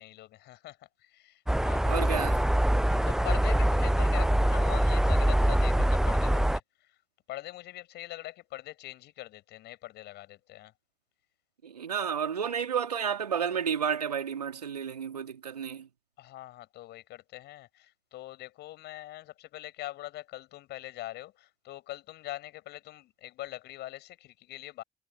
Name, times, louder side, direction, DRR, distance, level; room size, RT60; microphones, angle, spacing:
voice 1, 0.0-2.2 2.7-7.0 7.3-10.7 16.2-24.8, left 15 dB, 60° left, 7.0 m, -43 dB
sound 1, 1.5-6.6, right 1 dB, ahead, 0.4 m, -24 dB
voice 2, 1.8-2.4 11.6-15.9, right 7 dB, 80° right, 3.1 m, -31 dB
figure-of-eight pair, 45°, 20 cm